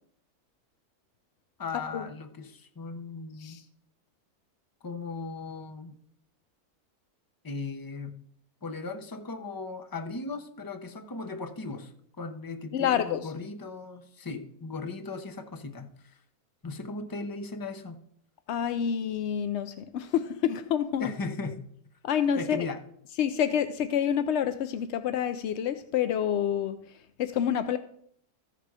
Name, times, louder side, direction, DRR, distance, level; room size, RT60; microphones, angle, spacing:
voice 1, 1.6-3.6 4.8-5.9 7.4-8.2 8.6-16.2 16.6-18.0 21.0-21.6 22.4-22.8, left 3 dB, 30° left, 0.3 m, -37 dB
voice 2, 12.7-13.3 18.5-21.1 22.0-22.7 23.2-26.8 27.2-27.8, left 9 dB, 70° left, 0.6 m, -28 dB
14.0 x 5.9 x 4.8 m
omnidirectional pair, 1.6 m